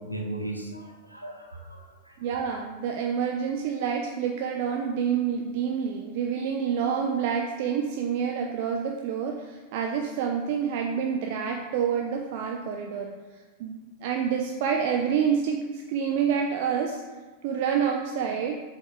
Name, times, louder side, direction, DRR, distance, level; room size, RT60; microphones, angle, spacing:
voice 1, 0.0-2.2, right 1 dB, 90° right, 1 dB, 0.8 m, -37 dB
voice 2, 2.2-13.1 13.6-17.0 17.4-18.5, right 7 dB, 50° right, 2 dB, 0.5 m, -28 dB
7.4 x 3.5 x 3.7 m, 1.3 s
figure-of-eight pair, 90°, 0 cm